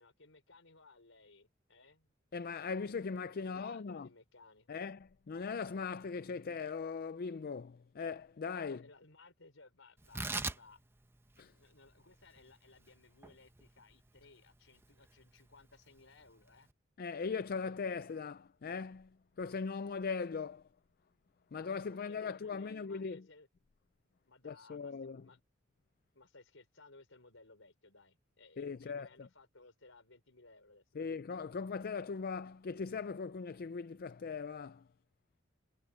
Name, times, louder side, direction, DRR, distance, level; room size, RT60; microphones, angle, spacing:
voice 1, 0.0-2.1 3.4-4.8 8.6-10.8 11.6-16.7 21.9-23.5 24.3-24.9 25.2-25.4 26.1-31.1, left 3 dB, 70° left, 5.6 m, -60 dB
voice 2, 2.3-4.1 4.7-8.8 11.4-11.5 17.0-19.1 19.4-20.6 21.5-23.3 24.4-25.3 28.6-29.3 30.9-34.9, left 5 dB, 50° left, 0.4 m, -39 dB
Tearing, 10.0-16.7, right 3 dB, 10° right, 0.8 m, -45 dB
head